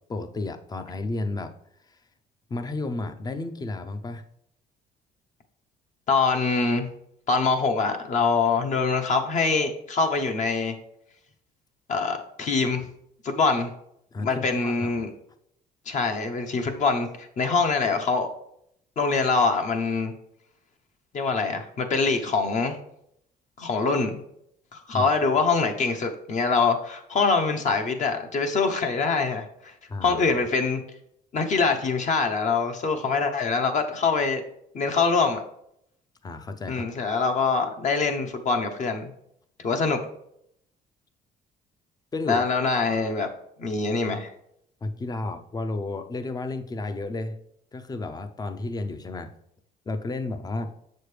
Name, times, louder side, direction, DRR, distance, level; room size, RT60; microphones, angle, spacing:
voice 1, 0.1-1.5 1.9-2.0 2.5-4.2 14.1-15.0 24.9-25.1 29.9-30.4 36.2-36.9 42.1-42.4 44.8-47.4 47.7-49.3 49.9-50.7, left 2 dB, 25° left, 9 dB, 0.6 m, -32 dB
voice 2, 6.1-6.9 7.3-10.8 11.9-12.9 13.2-13.7 14.2-15.1 15.9-18.3 19.0-20.1 21.1-22.8 23.6-24.2 24.7-29.7 30.0-30.8 31.3-34.4 34.7-35.4 36.7-39.1 39.6-40.0 42.3-43.3 43.6-44.3, left 4 dB, 45° left, 5 dB, 0.9 m, -24 dB
7.3 x 6.5 x 3.3 m, 0.73 s
cardioid pair, 110°, 17 cm